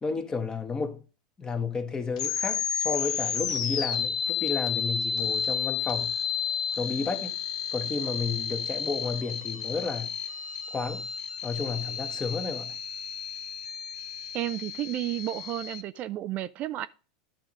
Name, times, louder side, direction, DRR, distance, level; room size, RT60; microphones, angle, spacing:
voice 1, 0.0-1.0 1.4-6.1 6.8-7.3 7.7-10.1 10.7-11.1 11.4-12.8, left 4 dB, 20° left, 1.3 m, -32 dB
sound 1, 2.1-15.8, left 7 dB, 75° left, 1.0 m, -32 dB
voice 2, 14.3-16.9, right 14 dB, 40° right, 0.4 m, -32 dB
10.5 x 3.8 x 6.1 m
hypercardioid pair, 100°, 4 cm